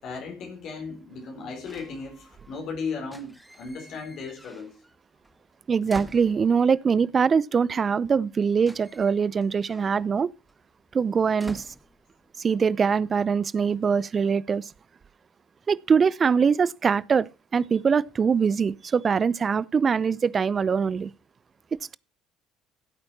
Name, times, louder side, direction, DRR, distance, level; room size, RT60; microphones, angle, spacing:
voice 1, 0.0-4.8, left 4 dB, 55° left, 4.1 m, -36 dB
sound 1, 1.6-2.6 3.0-5.0 5.2-6.8 7.8-7.9 8.1-12.6 12.9-13.3, equal, ahead, 1.9 m, -47 dB
voice 2, 5.7-10.3 10.9-11.7 12.4-14.7 15.7-21.1, right 6 dB, 35° right, 0.7 m, -23 dB
16.0 x 8.8 x 4.2 m
figure-of-eight pair, 55°, 0 cm